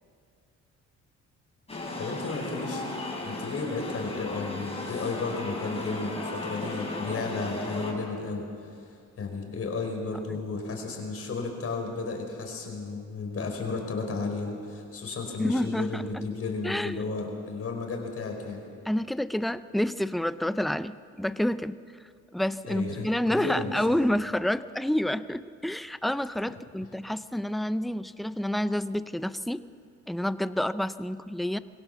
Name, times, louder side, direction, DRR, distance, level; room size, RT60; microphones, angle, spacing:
sound 1, 1.7-7.9, left 2 dB, 20° left, 6.8 m, -35 dB
voice 1, 2.0-2.8 3.3-8.9 9.2-18.6 22.7-24.0, left 3 dB, 50° left, 2 dB, 5.0 m, -33 dB
voice 2, 15.4-16.2 16.6-17.0 18.9-21.8 22.3-29.6 30.1-31.6, left 1 dB, ahead, 14 dB, 0.5 m, -28 dB
23.0 x 17.0 x 7.2 m, 2.3 s
cardioid pair, 90°, 30 cm